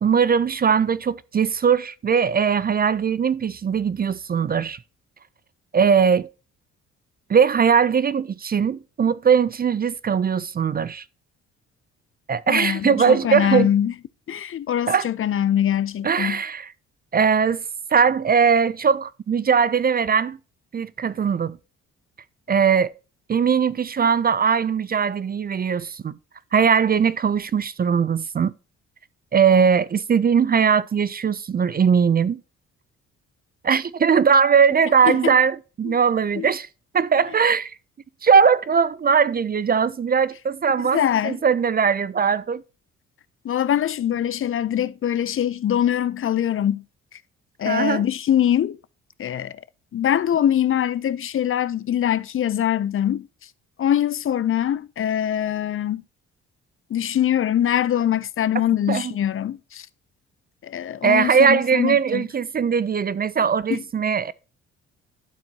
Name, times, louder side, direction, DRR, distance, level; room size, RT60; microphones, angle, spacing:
voice 1, 0.0-4.8 5.7-6.3 7.3-11.0 12.3-13.7 14.9-15.1 16.0-16.7 17.1-17.6 17.9-20.4 20.7-21.6 22.5-22.9 23.3-26.2 26.5-28.5 29.3-32.4 33.6-36.7 36.9-37.7 38.2-42.6 47.6-48.0 58.9-59.1 61.0-64.3, right 6 dB, 30° right, 0.4 m, -20 dB
voice 2, 12.5-13.9 14.3-16.4 35.1-35.3 35.8-36.0 36.4-36.5 40.9-41.4 43.4-46.8 47.1-47.2 47.6-48.8 49.2-49.6 49.9-53.5 53.8-56.0 56.9-59.9 60.6-62.3 63.7-63.8, left 10 dB, 45° left, 0.5 m, -23 dB
12.0 x 4.4 x 2.7 m
supercardioid pair, 60°, 30 cm